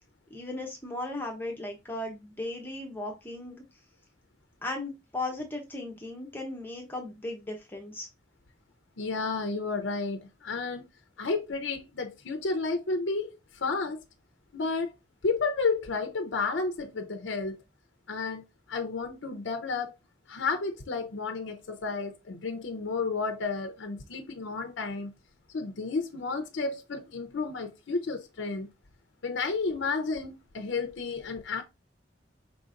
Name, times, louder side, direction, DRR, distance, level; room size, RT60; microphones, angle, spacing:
voice 1, 0.3-3.6 4.6-8.1, left 2 dB, 10° left, 0.8 m, -36 dB
voice 2, 9.0-10.9 11.2-14.0 14.5-14.9 15.2-17.6 18.1-18.4 18.7-19.9 20.3-25.1 25.5-28.7 29.2-31.6, left 4 dB, 85° left, 0.6 m, -31 dB
4.9 x 3.9 x 2.5 m
head